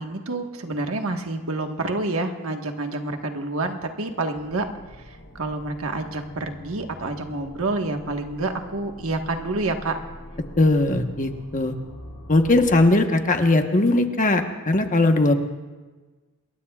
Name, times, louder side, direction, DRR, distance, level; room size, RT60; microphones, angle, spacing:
voice 1, 0.0-4.7 5.0-10.0, right 2 dB, 75° right, 4 dB, 1.5 m, -28 dB
sound 1, 4.3-12.9, equal, 75° left, 5.2 m, -44 dB
voice 2, 10.6-11.7 12.3-15.3, left 2 dB, 40° left, 5 dB, 1.2 m, -19 dB
27.5 x 21.0 x 2.4 m, 1.3 s
head